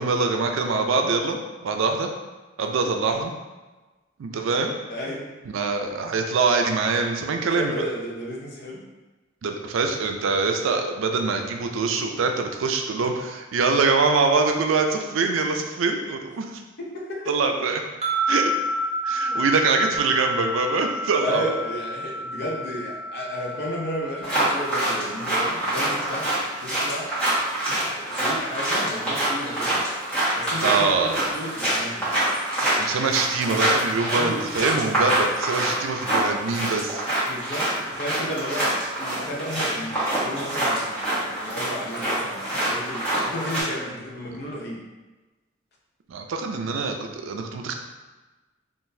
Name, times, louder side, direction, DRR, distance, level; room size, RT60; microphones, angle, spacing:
voice 1, 0.0-2.1 2.6-3.3 4.2-4.7 5.5-7.7 9.4-16.5 17.3-17.8 18.3-18.5 19.0-21.5 30.6-31.1 32.8-37.0 46.1-47.7, right 4 dB, 90° right, 4 dB, 0.4 m, -24 dB
voice 2, 4.9-5.3 7.5-8.8 16.8-17.5 19.2-19.5 21.2-26.3 26.6-27.1 27.8-29.8 30.3-32.1 34.1-34.4 35.3-35.4 37.3-44.8, equal, 55° left, -2 dB, 0.6 m, -33 dB
sound 1, 18.0-27.3, equal, 35° right, 0.5 m, -30 dB
sound 2, 24.2-43.6, right 1 dB, 5° left, 1.3 m, -26 dB
3.8 x 2.5 x 2.6 m, 1.2 s
head